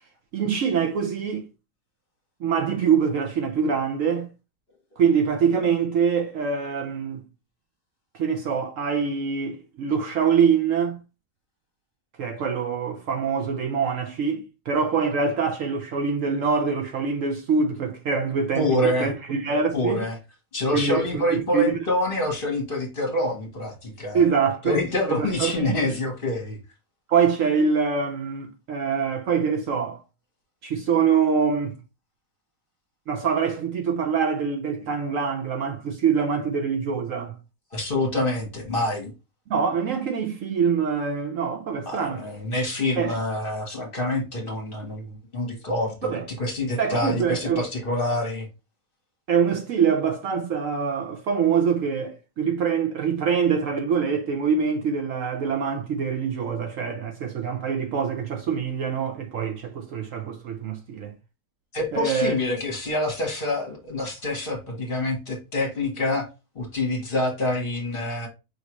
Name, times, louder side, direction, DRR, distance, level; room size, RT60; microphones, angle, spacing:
voice 1, 0.3-1.5 2.4-4.3 5.0-7.2 8.1-11.0 12.2-20.1 20.7-21.7 24.1-24.8 25.1-25.8 27.1-30.0 30.6-31.8 33.1-37.3 39.5-42.2 43.0-43.1 46.0-46.3 46.8-47.6 49.3-61.1 61.9-62.3, right 6 dB, 65° right, 0.9 m, -24 dB
voice 2, 18.5-19.1 19.7-20.1 20.5-24.2 24.6-26.6 37.7-39.1 41.9-46.1 46.4-48.5 61.7-66.3 66.5-68.3, left 1 dB, 40° left, 1.3 m, -26 dB
4.8 x 3.2 x 3.0 m
omnidirectional pair, 1.7 m